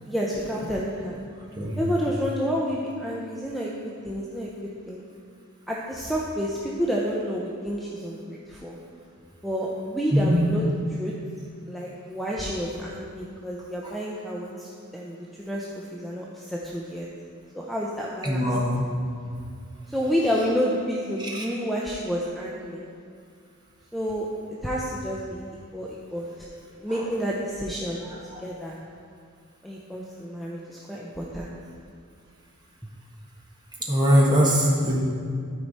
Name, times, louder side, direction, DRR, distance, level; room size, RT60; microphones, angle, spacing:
voice 1, 0.1-1.2 1.8-3.7 4.0-4.5 4.9-5.0 5.7-8.8 9.4-10.6 11.0-11.1 11.7-17.1 17.5-18.5 19.9-22.8 23.9-25.4 25.7-26.5 26.8-28.1 28.4-28.8 29.6-31.6, equal, ahead, -4 dB, 0.6 m, -29 dB
voice 2, 10.1-10.4 13.8-13.9 18.2-18.8 21.2-21.5 26.9-27.1 28.3-28.4 33.8-35.0, equal, 20° right, -3 dB, 1.4 m, -22 dB
13.0 x 4.7 x 4.1 m, 2.2 s
head